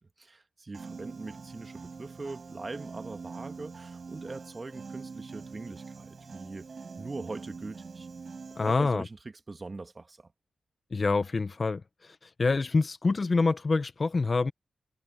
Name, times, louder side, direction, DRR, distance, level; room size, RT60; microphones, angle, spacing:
voice 1, 0.2-6.7 7.0-8.1 8.6-9.2 9.5-10.3, right 3 dB, 35° right, 1.5 m, -41 dB
Piano, 0.7-8.8, right 5 dB, 50° right, 7.4 m, -44 dB
voice 2, 8.6-9.1 10.9-14.5, left 3 dB, 40° left, 0.6 m, -26 dB
wide cardioid pair, 100°, 0 cm